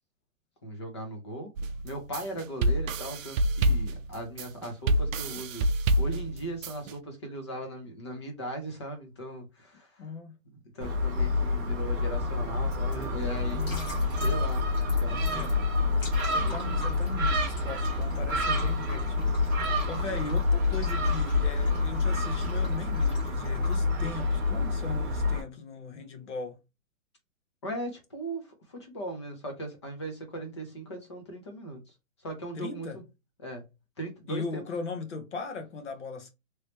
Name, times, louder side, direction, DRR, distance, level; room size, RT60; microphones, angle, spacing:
voice 1, 0.6-1.5 1.8-5.7 6.0-10.0 10.5-14.7 15.0-15.5 16.4-16.8 27.6-31.8 32.2-33.0 33.4-33.6 34.0-34.8, right 1 dB, 20° left, 0.6 m, -38 dB
sound 1, 1.6-6.9, right 1 dB, 65° right, 0.5 m, -27 dB
voice 2, 10.0-10.3 13.5-14.3 15.3-15.6 16.3-26.6 32.5-33.0 34.3-36.3, left 4 dB, 55° left, 1.1 m, -39 dB
Gull seagull, 10.8-25.4, left 3 dB, 15° right, 0.6 m, -27 dB
sound 2, 12.7-23.8, equal, 40° left, 1.9 m, -45 dB
3.1 x 3.1 x 2.9 m
hypercardioid pair, 175°, 41 cm